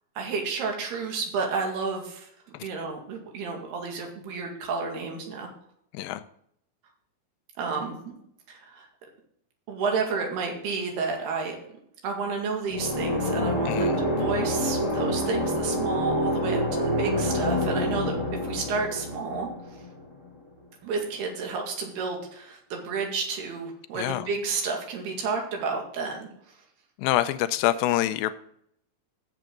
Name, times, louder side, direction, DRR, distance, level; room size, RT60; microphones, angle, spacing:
voice 1, 0.2-2.3 2.6-5.5 7.6-8.1 8.5-8.9 9.7-11.6 12.0-19.5 20.8-26.6, right 4 dB, 80° right, 4.1 m, -31 dB
sound 1, 12.7-20.3, equal, 30° left, 1.5 m, -27 dB
voice 2, 13.7-14.0 23.9-24.3 27.0-28.3, left 14 dB, 80° left, 2.2 m, -26 dB
12.5 x 7.7 x 3.8 m
omnidirectional pair, 4.5 m